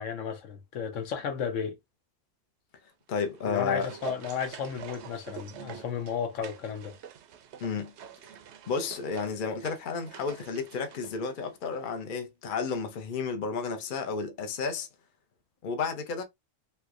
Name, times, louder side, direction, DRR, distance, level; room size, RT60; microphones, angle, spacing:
voice 1, 0.0-1.8 3.5-6.9, left 7 dB, 80° left, 1.1 m, -33 dB
voice 2, 3.1-3.9 7.6-7.9 8.7-14.9 15.6-16.2, left 5 dB, 50° left, 0.7 m, -32 dB
sound 1, 3.2-11.9 12.1-12.2, right 7 dB, 70° right, 0.8 m, -46 dB
3.3 x 3.0 x 2.4 m
omnidirectional pair, 1.3 m